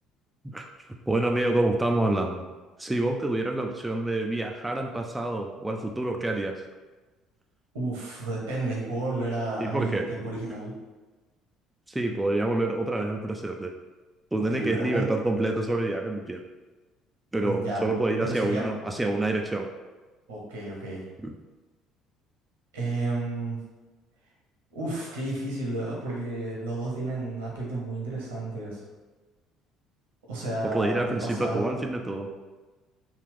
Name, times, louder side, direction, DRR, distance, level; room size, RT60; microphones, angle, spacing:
voice 1, 1.1-2.4 2.8-6.6 9.6-10.0 11.9-13.7 14.3-16.4 17.3-19.7 21.2-21.3 30.6-32.3, right 2 dB, 10° right, 2 dB, 0.4 m, -27 dB
voice 2, 7.7-10.7 14.5-15.1 17.4-17.9 18.2-18.7 20.3-21.0 22.7-23.6 24.7-28.8 30.2-31.7, right 2 dB, 75° right, -4 dB, 1.0 m, -32 dB
3.6 x 2.3 x 3.5 m, 1.2 s
figure-of-eight pair, 55°, 0 cm